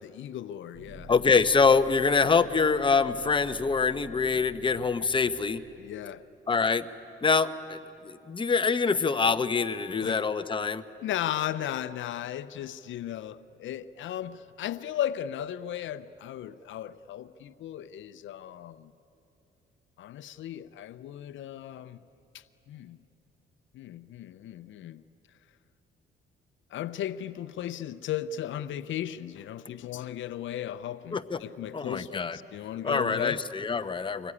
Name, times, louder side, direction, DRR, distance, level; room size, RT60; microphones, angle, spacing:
voice 1, 0.0-1.1 5.8-6.2 10.0-10.2 11.0-18.9 20.0-22.0 22.3-23.0 23.7-25.0 26.7-33.4, left 11 dB, 75° left, 14 dB, 0.6 m, -36 dB
sound 1, 0.7-5.8, right 1 dB, 15° right, 5.8 m, -49 dB
voice 2, 1.1-5.6 6.5-6.9 7.2-7.8 8.0-10.8 31.1-31.4 31.7-32.4 32.8-34.3, left 5 dB, 25° left, 10 dB, 0.9 m, -25 dB
25.5 x 20.5 x 9.8 m, 2.8 s
cardioid pair, 90°, 20 cm